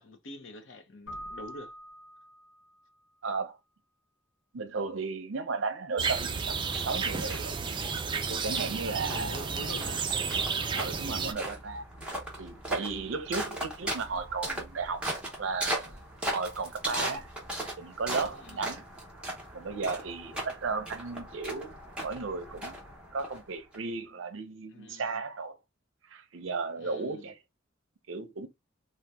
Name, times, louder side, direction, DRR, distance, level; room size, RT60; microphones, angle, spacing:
voice 1, 0.0-1.7 8.8-10.1 18.3-18.6 24.7-25.1 26.8-27.3, left 2 dB, 65° left, 0.7 m, -45 dB
Keyboard (musical), 1.1-2.9, equal, 85° left, 1.2 m, -45 dB
voice 2, 3.2-3.6 4.5-7.6 8.3-9.5 10.7-11.8 12.4-15.1 15.4-16.0 16.3-17.3 17.8-18.8 19.5-22.8 23.1-25.6 26.1-27.4 28.1-28.5, right 4 dB, 75° right, 0.6 m, -35 dB
sound 1, 6.0-23.8, right 1 dB, 5° right, 0.8 m, -39 dB
sound 2, 6.0-11.3, right 5 dB, 25° right, 0.3 m, -32 dB
2.8 x 2.2 x 3.4 m
head